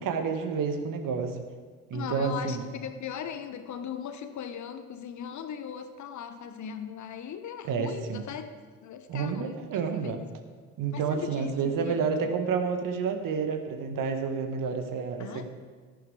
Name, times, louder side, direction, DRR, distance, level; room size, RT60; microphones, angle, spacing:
voice 1, 0.0-1.4 1.9-2.6 7.7-8.2 9.1-10.2 10.8-15.5, right 5 dB, 50° right, 1.6 m, -29 dB
voice 2, 1.9-8.6 8.8-10.2 10.9-12.1 15.2-15.5, left 8 dB, 40° left, 1.0 m, -39 dB
14.5 x 10.5 x 4.9 m
figure-of-eight pair, 50°, 43 cm